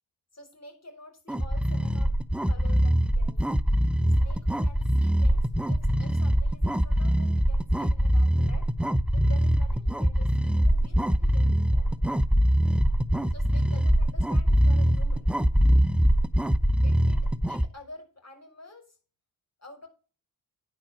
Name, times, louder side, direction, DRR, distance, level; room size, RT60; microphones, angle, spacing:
voice 1, 0.3-2.1 2.5-3.4 4.2-8.7 9.1-12.0 13.3-15.3 16.8-19.0 19.6-19.9, left 2 dB, 35° left, 4 dB, 5.7 m, -48 dB
sound 1, 1.3-17.7, equal, ahead, 0.7 m, -23 dB
10.0 x 5.7 x 7.4 m, 0.36 s
supercardioid pair, 45°, 46 cm